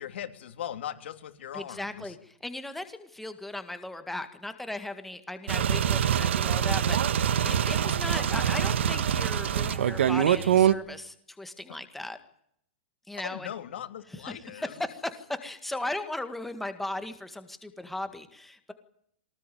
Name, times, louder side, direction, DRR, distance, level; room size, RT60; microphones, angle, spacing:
voice 1, 0.0-2.2 13.2-14.8, left 10 dB, 70° left, 7 dB, 3.5 m, -39 dB
voice 2, 1.5-12.2 13.1-13.5 14.3-18.7, left 2 dB, 5° left, 8 dB, 1.8 m, -37 dB
sound 1, 5.5-10.7, right 9 dB, 80° right, 1.6 m, -24 dB
23.5 x 19.0 x 9.3 m, 0.72 s
supercardioid pair, 165°, 6 cm